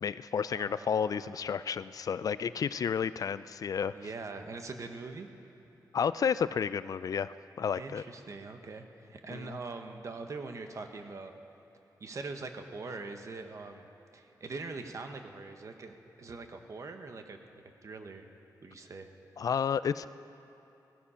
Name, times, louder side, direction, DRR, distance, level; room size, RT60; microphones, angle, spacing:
voice 1, 0.0-3.9 5.9-8.0 9.3-9.6 19.4-20.1, left 7 dB, 55° left, 15 dB, 0.3 m, -31 dB
voice 2, 0.5-1.4 3.9-5.3 7.7-11.3 12.0-13.9 14.1-18.3 18.6-19.1, right 3 dB, 50° right, 6 dB, 1.2 m, -43 dB
17.5 x 14.5 x 5.7 m, 2.9 s
wide cardioid pair, 155°, 7 cm